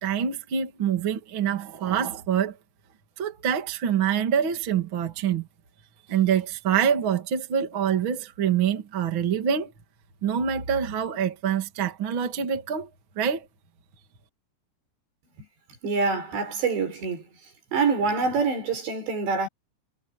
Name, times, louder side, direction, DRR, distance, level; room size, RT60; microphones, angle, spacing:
voice 1, 0.0-2.6 3.2-5.5 6.1-9.7 10.2-12.9 13.2-13.5, right 8 dB, 35° right, 2.5 m, -25 dB
voice 2, 15.8-17.2 17.7-19.5, right 4 dB, 85° right, 8.9 m, -25 dB
omnidirectional pair, 4.9 m